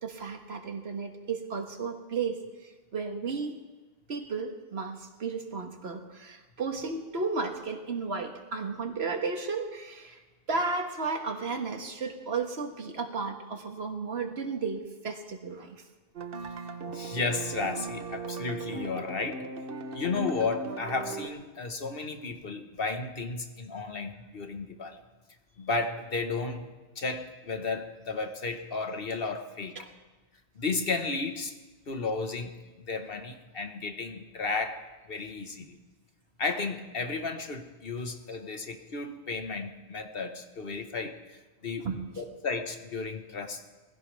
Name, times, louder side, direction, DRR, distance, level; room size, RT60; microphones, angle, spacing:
voice 1, 0.0-3.6 4.1-10.2 10.5-15.8 16.8-16.9 29.8-29.9 41.8-42.1, right 4 dB, 85° right, 5 dB, 1.7 m, -34 dB
sound 1, 16.2-21.3, right 3 dB, 65° right, 1.2 m, -38 dB
voice 2, 16.9-19.4 19.9-25.0 25.6-26.6 26.9-29.8 30.6-31.5 31.9-32.5 32.9-34.8 35.1-35.8 36.4-41.2 41.6-41.9 42.2-43.6, left 4 dB, 65° left, 5 dB, 1.6 m, -33 dB
22.0 x 16.0 x 3.5 m, 1.2 s
omnidirectional pair, 1.0 m